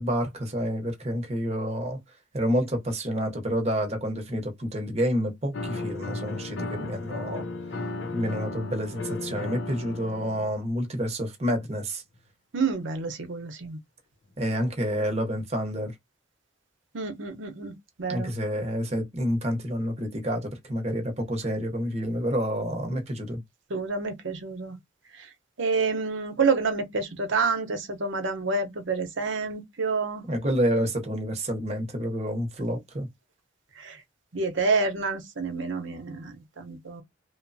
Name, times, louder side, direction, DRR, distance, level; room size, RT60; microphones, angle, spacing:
voice 1, 0.0-2.0 2.3-7.4 8.1-12.0 14.4-15.9 18.1-23.4 30.3-33.1, equal, 35° right, 0.8 m, -28 dB
sound 1, 5.5-10.6, left 2 dB, 75° left, 0.6 m, -35 dB
voice 2, 12.5-13.8 16.9-17.7 18.0-18.3 23.7-24.8 25.2-25.3 25.6-30.2 33.8-34.0 34.3-37.0, right 4 dB, 80° right, 0.8 m, -28 dB
3.0 x 2.0 x 2.6 m
head